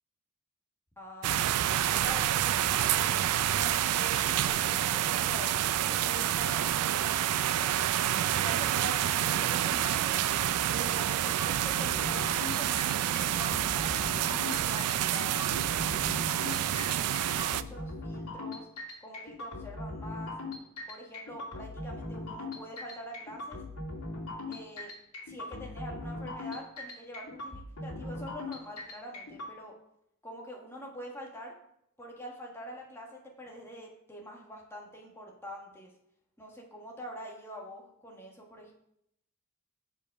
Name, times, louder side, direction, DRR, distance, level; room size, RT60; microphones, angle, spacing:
voice 1, 1.0-3.1 3.6-7.8 8.3-10.2 10.7-13.9 14.2-15.4 15.8-18.7 19.0-20.3 20.9-23.6 24.5-24.9 25.3-29.7 30.2-31.5 32.0-35.9 36.4-38.7, equal, 10° left, -1 dB, 1.5 m, -45 dB
sound 1, 1.2-17.6, right 11 dB, 90° right, 0.3 m, -28 dB
sound 2, 11.4-29.5, left 2 dB, 80° left, 2.5 m, -40 dB
7.1 x 5.1 x 5.4 m, 0.75 s
head